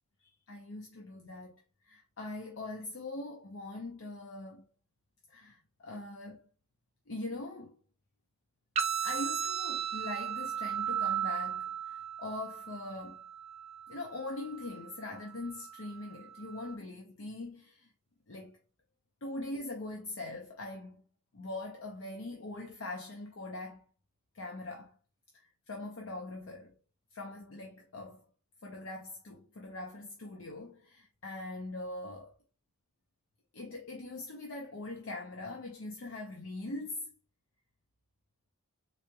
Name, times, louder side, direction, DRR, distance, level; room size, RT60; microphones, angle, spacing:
voice 1, 0.5-4.7 5.3-6.4 7.1-7.8 9.0-13.2 13.9-17.9 18.3-18.6 19.2-21.1 21.3-23.9 24.3-25.0 25.3-26.8 27.1-28.3 28.6-32.3 33.5-37.1, left 2 dB, 60° left, 0.6 m, -42 dB
sound 1, 8.8-16.7, right 8 dB, 30° right, 0.4 m, -37 dB
3.9 x 3.1 x 2.2 m
head